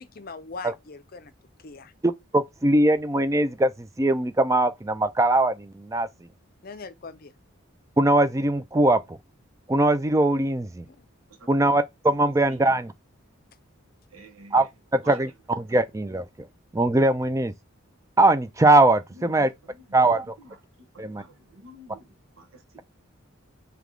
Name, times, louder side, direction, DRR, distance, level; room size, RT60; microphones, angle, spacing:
voice 1, 0.2-1.3 1.6-1.9 6.6-7.3 10.9-11.1, left 4 dB, 45° left, 0.5 m, -41 dB
voice 2, 2.0-6.1 8.0-9.2 9.7-10.9 11.5-12.9 14.5-16.5 16.7-17.5 18.2-19.5 19.9-20.3 21.0-21.2, right 2 dB, 15° right, 0.4 m, -21 dB
voice 3, 14.1-14.6 15.0-15.1 20.4-20.5 21.2-22.0 22.4-22.5 22.7-22.8, right 1 dB, 80° right, 1.0 m, -47 dB
3.4 x 2.9 x 3.6 m
head